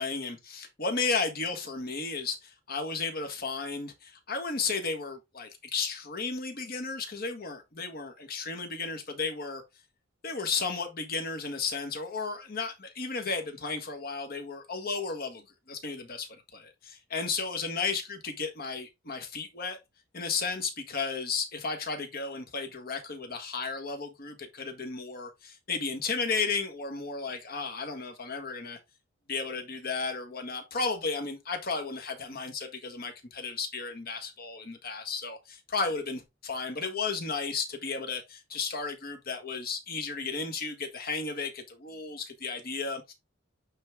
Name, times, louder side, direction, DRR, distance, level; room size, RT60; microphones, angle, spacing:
voice 1, 0.0-9.6 10.2-19.8 20.1-28.8 29.3-43.1, left 4 dB, 50° left, 1.5 m, -34 dB
8.7 x 3.7 x 3.5 m
head